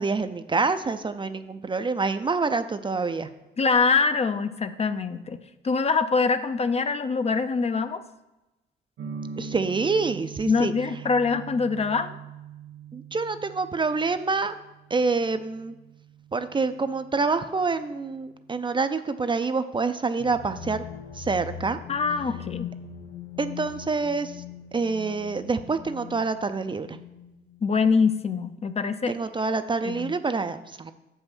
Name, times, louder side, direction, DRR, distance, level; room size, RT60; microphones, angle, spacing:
voice 1, 0.0-3.3 9.4-10.7 12.9-14.5 14.9-15.8 16.3-20.8 21.1-21.8 23.4-24.4 24.7-27.0 29.1-30.9, right 4 dB, 25° right, 10 dB, 0.4 m, -27 dB
voice 2, 3.6-8.0 10.5-12.2 21.9-22.7 27.6-29.1 29.8-30.1, left 4 dB, 30° left, 11 dB, 0.5 m, -24 dB
sound 1, 9.0-18.8, right 6 dB, 75° right, 1.5 m, -43 dB
sound 2, 20.2-27.9, left 8 dB, 75° left, 0.7 m, -41 dB
7.0 x 5.5 x 6.1 m, 0.99 s
cardioid pair, 90°, 20 cm